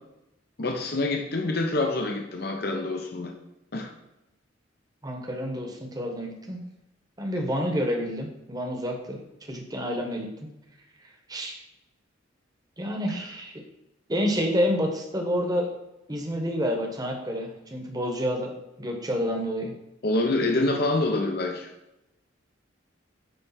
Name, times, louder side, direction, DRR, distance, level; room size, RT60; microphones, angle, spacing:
voice 1, 0.6-3.3 3.7-3.9 20.0-21.7, left 2 dB, 50° left, 3 dB, 0.7 m, -26 dB
voice 2, 5.0-6.6 7.2-10.5 11.3-11.6 12.8-13.6 14.1-15.7 16.1-18.5 18.8-19.7, equal, 20° right, 2 dB, 1.1 m, -29 dB
9.2 x 3.3 x 5.7 m, 0.90 s
head